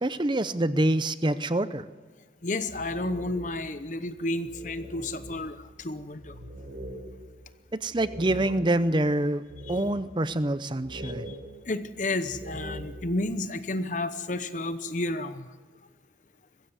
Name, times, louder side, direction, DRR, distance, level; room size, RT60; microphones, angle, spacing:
voice 1, 0.0-1.8 7.7-9.4 9.7-11.3, right 1 dB, 25° right, 14 dB, 0.6 m, -26 dB
voice 2, 2.4-6.4 9.7-9.8 11.0-11.4 11.7-15.5, left 2 dB, 45° left, 12 dB, 0.9 m, -31 dB
sound 1, 2.4-3.8 4.1-4.2 4.5-9.0 9.5-10.3 10.8-13.1, equal, 60° right, 5.1 m, -42 dB
22.5 x 15.5 x 8.2 m, 1.3 s
head